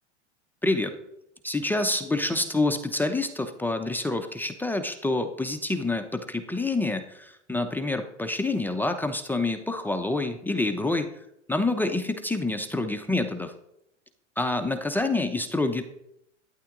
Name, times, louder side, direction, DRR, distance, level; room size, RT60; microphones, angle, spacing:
voice 1, 0.6-1.0 1.4-11.1 11.5-13.5 14.4-15.8, left 2 dB, 5° left, 6 dB, 0.8 m, -27 dB
11.5 x 9.9 x 3.9 m, 0.77 s
hypercardioid pair, 115°, 36 cm